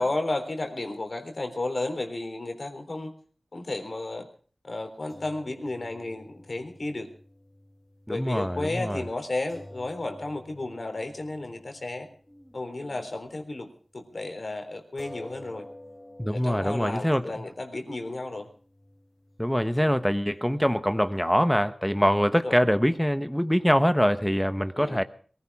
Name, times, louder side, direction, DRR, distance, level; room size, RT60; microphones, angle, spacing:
voice 1, 0.0-3.1 3.5-4.3 4.6-7.1 8.1-12.1 12.5-13.7 13.9-15.7 16.3-18.5 19.7-20.0 22.3-22.6 24.7-25.0, left 2 dB, 55° left, 3.8 m, -33 dB
sound 1, 5.1-13.6 13.9-14.1 15.0-21.5, left 1 dB, 20° left, 3.8 m, -51 dB
voice 2, 8.1-9.0 16.2-17.2 19.4-25.0, equal, 5° left, 1.1 m, -24 dB
22.5 x 16.0 x 3.6 m
wide cardioid pair, 55°, 0 cm